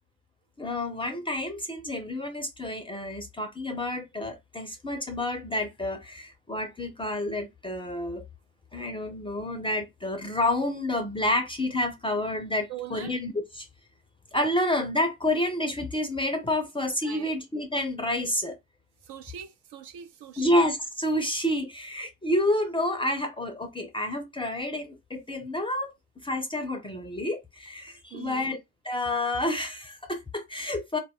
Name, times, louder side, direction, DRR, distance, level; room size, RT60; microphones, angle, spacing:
voice 1, 0.6-8.2 8.7-13.7 14.3-18.6 20.4-28.6 28.8-31.0, left 1 dB, 10° left, 0.5 m, -29 dB
voice 2, 12.7-13.1 17.0-17.3 19.0-20.6 28.1-28.5, right 10 dB, 60° right, 0.8 m, -41 dB
2.3 x 2.1 x 3.5 m
hypercardioid pair, 65°, 45 cm